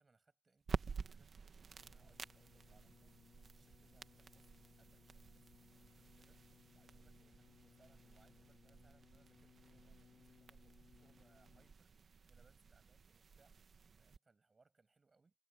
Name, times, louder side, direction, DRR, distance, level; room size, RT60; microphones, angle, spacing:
voice 1, 0.0-3.1 3.5-13.7 14.0-15.3, right 3 dB, 40° right, 7.3 m, -74 dB
sound 1, 0.6-14.2, right 5 dB, 70° right, 1.1 m, -51 dB
sound 2, 1.8-11.9 12.7-12.8, left 7 dB, 75° left, 2.0 m, -67 dB
wide cardioid pair, 160°, 0 cm